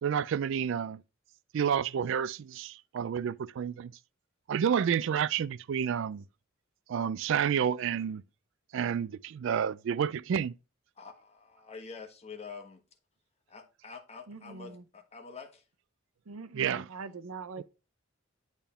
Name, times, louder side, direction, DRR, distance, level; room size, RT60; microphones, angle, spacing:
voice 1, 0.0-1.0 1.5-3.9 4.5-6.2 6.9-8.2 8.7-10.5 16.5-16.9 17.6-17.7, right 8 dB, 65° right, 0.3 m, -30 dB
voice 2, 11.0-12.8 13.5-15.6, left 5 dB, 30° left, 1.2 m, -47 dB
voice 3, 14.3-14.8 16.3-17.6, right 4 dB, 90° right, 0.7 m, -43 dB
9.0 x 3.5 x 5.6 m
head